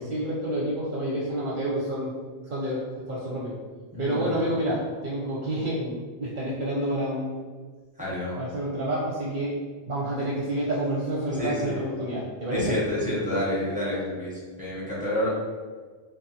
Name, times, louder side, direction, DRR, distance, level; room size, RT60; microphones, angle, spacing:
voice 1, 0.0-2.1 2.5-3.5 4.0-7.3 8.4-9.6 9.9-12.8, right 1 dB, 55° right, -6 dB, 0.6 m, -29 dB
voice 2, 3.9-4.5 8.0-8.4 11.3-11.8 12.5-15.3, left 1 dB, 10° right, -8 dB, 0.7 m, -29 dB
2.5 x 2.2 x 2.7 m, 1.5 s
omnidirectional pair, 1.1 m